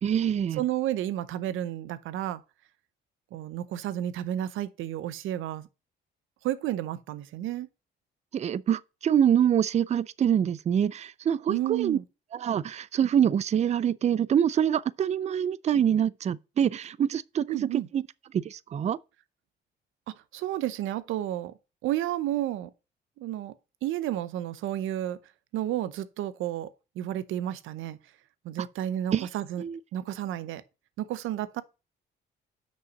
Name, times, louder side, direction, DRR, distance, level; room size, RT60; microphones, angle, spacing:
voice 1, 0.0-0.6 8.3-12.0 12.3-18.0 18.3-19.0 28.6-28.7 29.1-29.3 29.6-29.8, right 9 dB, 35° right, 0.4 m, -25 dB
voice 2, 0.6-2.4 3.3-5.7 6.4-7.7 11.5-12.0 17.5-17.9 20.1-21.5 21.8-22.7 23.2-23.5 23.8-25.2 25.5-26.7 27.0-28.0 28.4-29.6 29.9-30.6 31.0-31.6, right 12 dB, 85° right, 0.7 m, -31 dB
6.3 x 5.4 x 5.2 m
cardioid pair, 90°, 20 cm